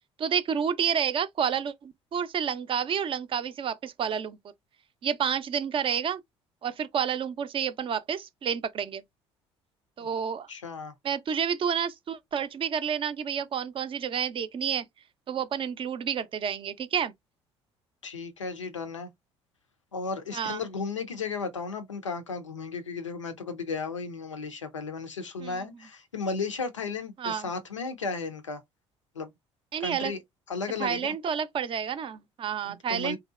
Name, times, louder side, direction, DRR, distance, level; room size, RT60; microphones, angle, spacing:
voice 1, 0.2-4.4 5.0-6.2 6.6-9.0 10.0-10.5 11.0-14.9 15.3-17.1 20.3-20.6 25.4-25.7 27.2-27.5 29.7-30.1 30.8-33.2, right 8 dB, 35° right, 0.4 m, -29 dB
voice 2, 10.5-10.9 18.0-19.1 19.9-28.6 29.1-29.3 29.8-30.2 30.5-31.1 32.6-33.2, left 4 dB, 90° left, 0.4 m, -34 dB
2.6 x 2.2 x 2.3 m
figure-of-eight pair, 55°, 15 cm